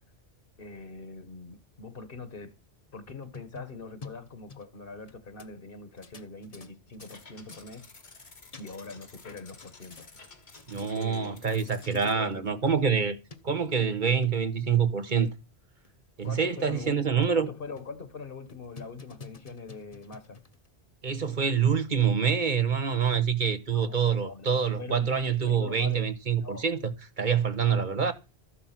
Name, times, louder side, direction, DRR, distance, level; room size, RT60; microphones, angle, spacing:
voice 1, 0.6-2.5 2.9-7.9 8.6-10.1 10.8-11.4 11.9-12.8 16.2-20.4 23.7-26.1 26.4-26.7 27.7-28.0, left 4 dB, 60° left, 1.6 m, -43 dB
sound 1, 2.9-5.1 5.4-5.5 6.0-7.2 7.5-7.7 8.3-9.0 9.2-10.3 10.5-10.9 11.6-11.7 11.8-12.0 12.3-12.4 12.7-12.8 13.3-13.4 14.0-14.3 14.8-14.9 15.3-15.4 15.8-15.9 16.2-16.3 16.8-17.4 17.8-18.0 18.5-20.7, left 4 dB, 35° left, 1.2 m, -48 dB
sound 2, 7.0-12.1, left 3 dB, 85° left, 2.3 m, -52 dB
voice 2, 10.7-13.2 13.4-15.3 16.2-17.5 21.0-28.1, right 7 dB, 50° right, 1.2 m, -26 dB
13.5 x 10.0 x 5.9 m
omnidirectional pair, 1.1 m